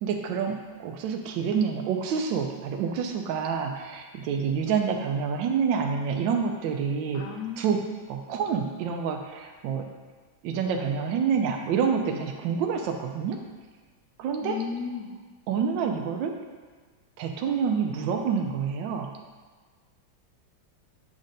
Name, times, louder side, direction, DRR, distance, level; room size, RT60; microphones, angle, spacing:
voice 1, 0.0-7.2 7.6-7.8 8.1-9.9 10.4-13.4 14.2-14.6 15.5-16.4 17.2-19.1, right 6 dB, 80° right, 3 dB, 1.3 m, -27 dB
voice 2, 7.1-7.7 14.4-15.1, left 6 dB, 70° left, 3 dB, 1.1 m, -34 dB
7.3 x 6.2 x 2.6 m, 1.4 s
omnidirectional pair, 2.1 m